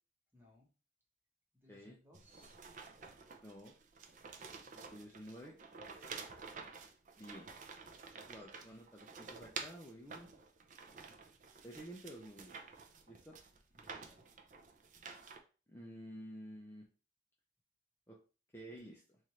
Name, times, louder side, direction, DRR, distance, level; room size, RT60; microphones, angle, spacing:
voice 1, 0.3-0.7 1.5-2.6 4.4-4.8 6.0-6.3 8.4-8.8 13.8-14.3, left 1 dB, 10° right, -1 dB, 1.1 m, -66 dB
sound 1, 2.1-15.4, right 5 dB, 45° right, 0.5 m, -51 dB
voice 2, 3.4-3.7 4.9-5.6 7.2-7.5 8.3-10.3 11.6-12.5 13.1-13.4 15.7-16.8 18.1-18.2 18.5-19.2, equal, 15° left, -2 dB, 0.5 m, -51 dB
3.2 x 2.5 x 4.2 m, 0.35 s
head